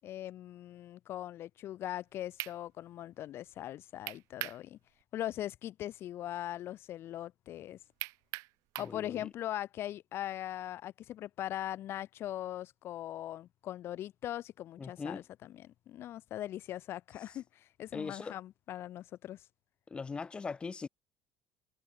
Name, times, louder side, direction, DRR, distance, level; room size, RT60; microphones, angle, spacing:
voice 1, 0.0-4.8 5.1-7.8 8.8-19.4, left 12 dB, 45° left, 7.3 m, -40 dB
sound 1, 2.0-2.1 2.4-2.6 4.1-4.6 5.0-5.1 8.0-9.0, right 22 dB, 70° right, 2.1 m, -40 dB
voice 2, 8.8-9.2 14.8-15.2 17.9-18.3 19.9-20.9, left 4 dB, 15° left, 6.2 m, -40 dB
cardioid pair, 170°, 6 cm